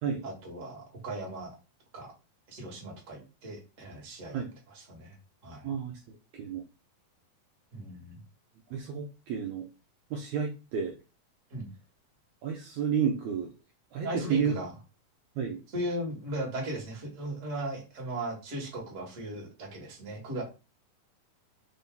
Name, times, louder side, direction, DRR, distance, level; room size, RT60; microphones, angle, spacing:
voice 1, 0.2-1.5 1.9-2.1 2.5-5.2 5.4-5.7 7.7-8.2 11.5-11.7 14.0-14.7 15.7-20.4, right 1 dB, 35° right, -1 dB, 1.2 m, -37 dB
voice 2, 8.7-9.6 10.1-10.9 12.4-13.5 13.9-14.5 15.4-15.6, right 7 dB, 85° right, 1 dB, 1.7 m, -31 dB
5.3 x 2.7 x 3.7 m, 0.30 s
omnidirectional pair, 4.1 m